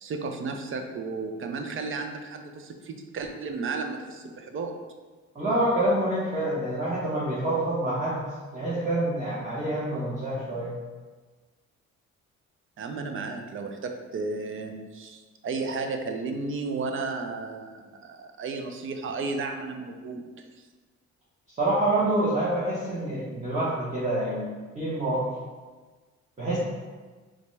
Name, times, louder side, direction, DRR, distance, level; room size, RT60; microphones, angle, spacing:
voice 1, 0.0-4.7 12.8-20.3, right 4 dB, 45° right, 5 dB, 0.4 m, -33 dB
voice 2, 5.3-10.7 21.6-24.5 24.7-25.3 26.4-26.6, right 1 dB, 25° right, -8 dB, 0.9 m, -27 dB
3.8 x 2.2 x 3.1 m, 1.3 s
cardioid pair, 90°, 30 cm